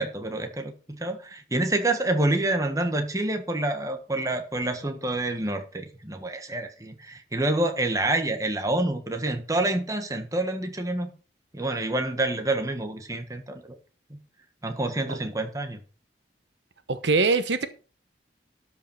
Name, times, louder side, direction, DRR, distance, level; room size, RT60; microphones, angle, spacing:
voice 1, 0.0-11.1 11.5-13.8 14.1-14.2 14.6-15.8, right 2 dB, 20° right, 6 dB, 1.5 m, -27 dB
voice 2, 16.9-17.7, right 3 dB, 80° right, 11 dB, 1.0 m, -23 dB
12.5 x 5.6 x 5.7 m, 0.36 s
head